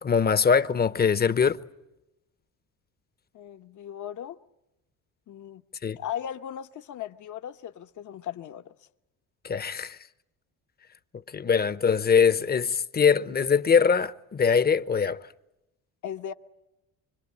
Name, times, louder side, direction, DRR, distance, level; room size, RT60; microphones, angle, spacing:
voice 1, 0.0-1.6 5.8-6.0 9.4-10.0 11.3-15.2, left 6 dB, 25° left, 1.0 m, -22 dB
voice 2, 3.3-4.4 5.3-5.6 6.0-8.7 16.0-16.3, left 10 dB, 55° left, 1.2 m, -37 dB
25.5 x 25.0 x 8.5 m
cardioid pair, 95°, 36 cm